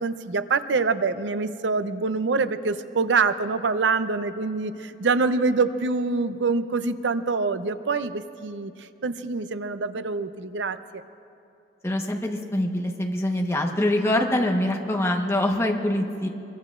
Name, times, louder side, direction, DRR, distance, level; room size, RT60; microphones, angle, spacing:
voice 1, 0.0-8.7 9.0-11.0, right 4 dB, 90° right, 11 dB, 0.6 m, -25 dB
voice 2, 11.8-16.3, left 1 dB, 15° left, 1 dB, 1.2 m, -24 dB
24.5 x 22.5 x 2.5 m, 2.6 s
head